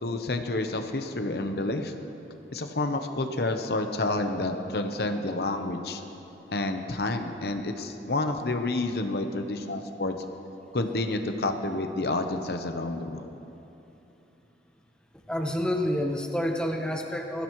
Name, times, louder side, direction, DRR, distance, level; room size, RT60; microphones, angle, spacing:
voice 1, 0.0-1.9 2.5-6.0 6.5-10.1 10.7-13.3, left 2 dB, 60° left, 6 dB, 0.9 m, -29 dB
voice 2, 15.3-17.4, equal, 5° left, 2 dB, 1.0 m, -28 dB
21.5 x 16.0 x 3.1 m, 2.9 s
head